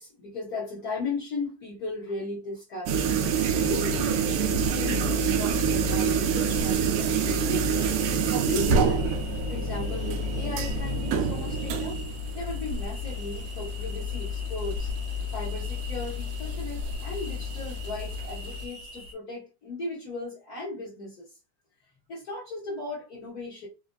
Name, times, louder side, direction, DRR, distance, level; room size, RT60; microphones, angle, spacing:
voice 1, 0.0-3.0 3.5-7.9 8.3-9.1 9.5-12.0 12.3-14.9 15.3-21.3 22.1-23.7, left 2 dB, 65° left, 0.9 m, -36 dB
sound 1, 2.9-18.6, right 4 dB, 85° right, 2.1 m, -27 dB
sound 2, 7.7-19.1, right 1 dB, 50° right, 1.8 m, -45 dB
5.0 x 2.4 x 2.3 m
omnidirectional pair, 3.5 m